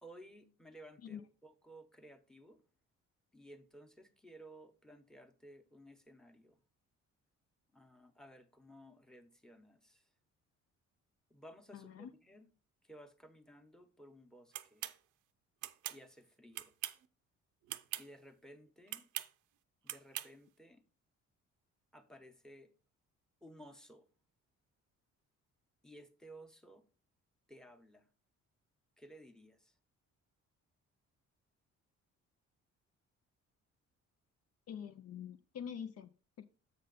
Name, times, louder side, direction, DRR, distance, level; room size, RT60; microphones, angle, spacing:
voice 1, 0.0-2.6 3.3-6.6 7.7-10.1 11.3-12.5 12.8-14.9 15.9-16.7 18.0-19.1 19.8-20.8 21.9-22.7 23.4-24.1 25.8-26.8 27.5-28.1 29.0-29.8, right 1 dB, ahead, 0.9 m, -57 dB
voice 2, 11.7-12.1 34.7-36.1 36.4-36.5, left 8 dB, 55° left, 0.5 m, -45 dB
sound 1, 14.5-15.0 15.6-16.0 16.5-17.1 17.7-18.1 18.9-19.3 19.9-20.3, right 14 dB, 90° right, 0.5 m, -41 dB
7.6 x 5.5 x 3.9 m
cardioid pair, 90°, 30 cm